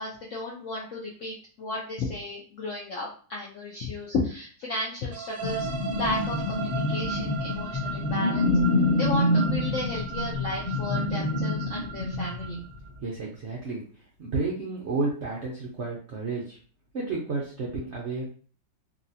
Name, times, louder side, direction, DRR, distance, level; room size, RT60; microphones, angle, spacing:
voice 1, 0.0-5.7 6.0-8.5 9.0-12.6, left 2 dB, 75° left, -2 dB, 0.7 m, -34 dB
sound 1, 5.1-12.9, right 8 dB, 85° right, 1.3 m, -38 dB
sound 2, 5.4-12.8, left 2 dB, 30° left, 0.8 m, -27 dB
voice 2, 13.0-13.8 14.2-16.6 16.9-18.3, right 3 dB, 70° right, -4 dB, 0.6 m, -31 dB
3.1 x 2.7 x 2.7 m, 0.43 s
omnidirectional pair, 2.0 m